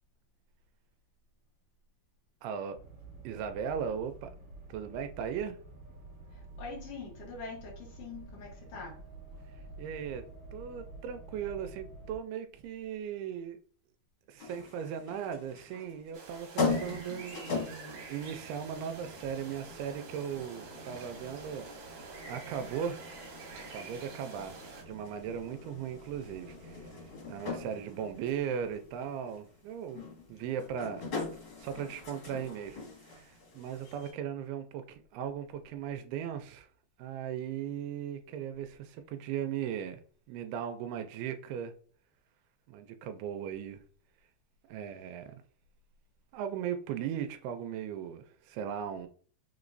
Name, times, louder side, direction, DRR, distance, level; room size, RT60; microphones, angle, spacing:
voice 1, 2.4-2.8 3.2-4.3 4.7-5.6 9.8-10.2 10.5-13.6 14.3-23.1 23.7-26.9 27.3-31.1 31.6-36.7 37.0-40.0 40.3-41.7 42.7-43.8 44.7-45.4 46.3-49.1, right 8 dB, 80° right, 2.4 m, -38 dB
sound 1, 2.7-12.2, right 3 dB, 35° right, 2.1 m, -49 dB
voice 2, 6.3-9.0, left 4 dB, 75° left, 1.4 m, -44 dB
sound 2, 14.4-34.1, left 4 dB, 50° left, 1.6 m, -41 dB
sound 3, 16.1-24.8, right 4 dB, 65° right, 2.4 m, -48 dB
6.0 x 3.0 x 2.6 m
omnidirectional pair, 4.7 m